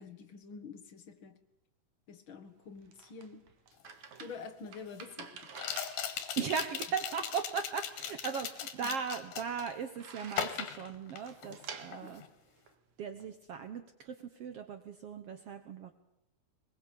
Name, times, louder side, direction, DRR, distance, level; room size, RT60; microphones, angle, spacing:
voice 1, 0.0-1.4 2.1-3.4 4.2-5.6 8.8-9.0 11.9-12.1, left 5 dB, 50° left, 7 dB, 1.7 m, -47 dB
sound 1, 2.5-13.3, right 6 dB, 55° right, 2.8 m, -51 dB
sound 2, 3.9-4.0 5.6-9.8 10.3-11.6 11.9-12.3, left 9 dB, 75° left, 3.5 m, -39 dB
voice 2, 6.4-12.2 13.0-15.9, right 6 dB, 90° right, 9 dB, 1.3 m, -38 dB
22.5 x 21.0 x 8.4 m, 0.83 s
omnidirectional pair, 4.3 m